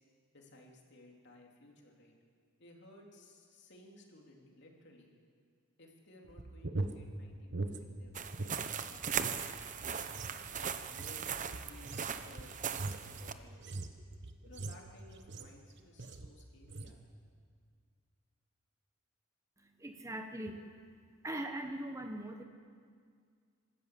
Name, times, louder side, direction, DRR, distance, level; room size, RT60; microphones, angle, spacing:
voice 1, 0.3-2.1 2.6-5.1 5.8-10.2 10.5-13.8 14.4-17.0, left 1 dB, 60° left, 0 dB, 3.3 m, -58 dB
sound 1, 6.3-8.6 8.9-15.6 16.0-16.4 16.6-17.0, right 2 dB, 60° right, 1.2 m, -42 dB
sound 2, 8.1-13.3, right 7 dB, 40° right, 0.8 m, -39 dB
voice 2, 19.6-22.4, right 1 dB, 15° right, 5 dB, 1.1 m, -42 dB
25.5 x 13.5 x 8.5 m, 2.1 s
head